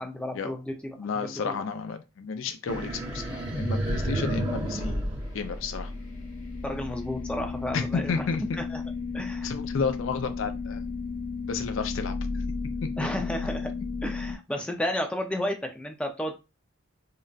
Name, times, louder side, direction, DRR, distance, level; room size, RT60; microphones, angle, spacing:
voice 1, 0.0-1.6 6.6-8.2 8.6-8.8 9.1-9.5 13.0-13.7 14.0-16.4, left 1 dB, 5° left, 4 dB, 0.4 m, -32 dB
voice 2, 1.0-5.1 5.3-5.9 7.7-8.4 9.4-10.8 11.5-12.4 12.8-12.9, left 5 dB, 70° left, 9 dB, 0.4 m, -32 dB
sound 1, 2.7-6.1, right 1 dB, 20° right, 0.8 m, -30 dB
sound 2, 5.2-14.4, left 4 dB, 85° left, 1.0 m, -34 dB
3.8 x 2.1 x 2.3 m, 0.27 s
head